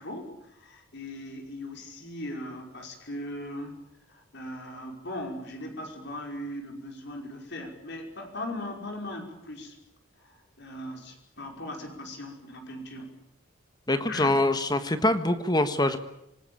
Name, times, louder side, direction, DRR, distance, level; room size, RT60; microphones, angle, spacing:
voice 1, 0.0-3.7 4.1-9.8 10.2-13.1 14.1-14.3, left 1 dB, 55° left, 3 dB, 5.4 m, -39 dB
voice 2, 13.9-16.0, left 1 dB, 20° left, 10 dB, 1.4 m, -24 dB
26.5 x 20.5 x 8.6 m, 0.80 s
head